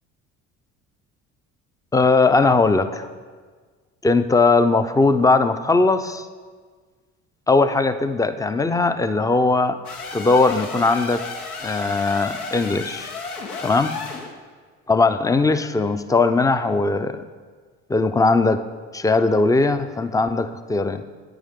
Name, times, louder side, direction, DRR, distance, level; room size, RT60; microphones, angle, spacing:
voice 1, 1.9-3.1 4.0-6.3 7.5-9.8 10.1-11.2 11.6-13.1 13.6-14.0 14.9-17.2 17.9-18.6 18.9-21.0, left 3 dB, 10° left, 10 dB, 0.4 m, -19 dB
sound 1, 9.8-14.3, left 4 dB, 90° left, 1.1 m, -33 dB
10.5 x 9.0 x 3.6 m, 1.5 s
hypercardioid pair, 60°, 43 cm